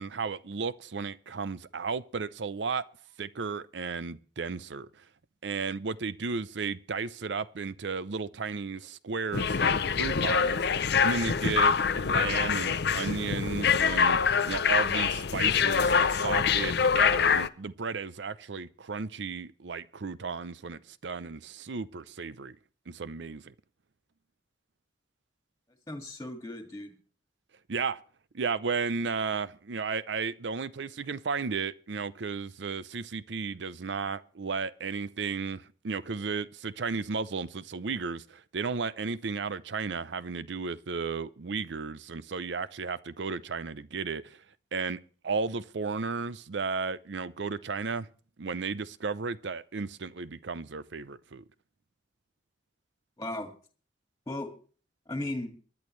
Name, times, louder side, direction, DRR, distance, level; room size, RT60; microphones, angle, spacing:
voice 1, 0.0-2.8 3.2-5.1 5.4-22.6 22.9-23.5 27.7-28.0 28.3-44.4 44.7-48.1 48.4-51.4, right 5 dB, 75° right, 0.6 m, -34 dB
sound 1, 9.3-17.5, left 6 dB, 60° left, 0.6 m, -25 dB
voice 2, 25.9-26.9 53.2-53.5 54.3-54.5 55.1-55.5, left 1 dB, 20° left, 2.0 m, -36 dB
24.0 x 11.0 x 3.2 m
head